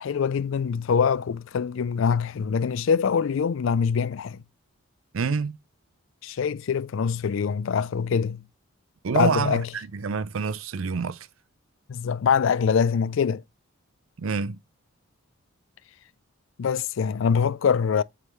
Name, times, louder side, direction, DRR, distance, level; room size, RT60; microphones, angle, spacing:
voice 1, 0.0-4.4 6.2-8.4 9.1-9.7 11.9-13.4 16.6-18.0, left 6 dB, 60° left, 0.4 m, -24 dB
voice 2, 5.1-5.6 9.0-11.3 14.2-14.6, right 5 dB, 65° right, 0.5 m, -27 dB
8.2 x 3.7 x 3.1 m
head